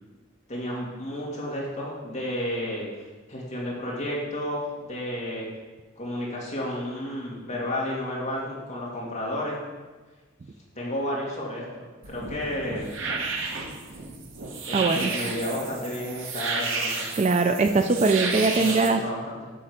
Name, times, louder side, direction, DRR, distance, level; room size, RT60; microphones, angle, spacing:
voice 1, 0.5-2.9 3.3-5.5 6.0-9.6 10.8-11.6 12.1-12.9 14.7-17.1 18.3-19.5, left 1 dB, 35° left, -5 dB, 2.0 m, -32 dB
sound 1, 12.0-18.9, right 4 dB, 70° right, 1.1 m, -32 dB
voice 2, 14.7-15.1 17.1-19.0, right 3 dB, 35° right, 7 dB, 0.3 m, -21 dB
8.6 x 3.9 x 6.4 m, 1.3 s
head